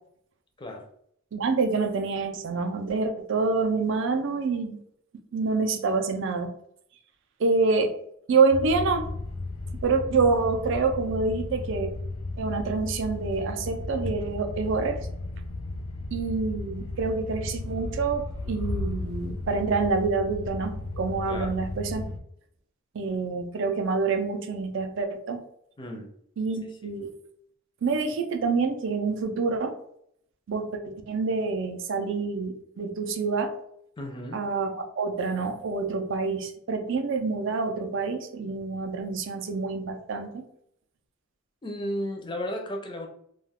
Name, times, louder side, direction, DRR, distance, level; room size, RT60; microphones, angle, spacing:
voice 1, 0.6-0.9 21.3-21.5 25.8-26.1 26.7-26.8 34.0-34.4 41.6-43.1, equal, 20° left, 3 dB, 0.4 m, -34 dB
voice 2, 1.3-4.8 5.3-6.5 7.4-7.9 8.3-9.1 9.8-11.9 12.4-15.1 16.1-22.0 22.9-25.4 26.4-27.1 27.8-29.7 30.5-33.5 34.3-40.4, right 4 dB, 60° right, 5 dB, 0.4 m, -27 dB
sound 1, 8.5-22.2, left 2 dB, 85° left, 0.4 m, -34 dB
2.3 x 2.3 x 3.4 m, 0.69 s
head